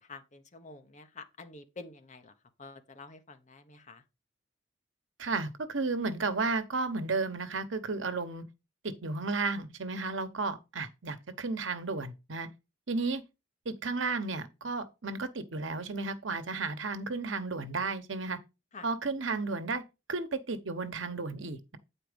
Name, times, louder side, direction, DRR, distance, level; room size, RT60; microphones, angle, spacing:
voice 1, 0.0-2.3 2.6-4.0 18.7-18.8, left 3 dB, 40° left, 1.0 m, -48 dB
voice 2, 5.2-8.4 8.8-12.5 12.9-13.2 13.6-18.4 18.8-19.8 20.1-21.8, right 3 dB, 85° right, 1.0 m, -33 dB
9.0 x 4.4 x 5.1 m
head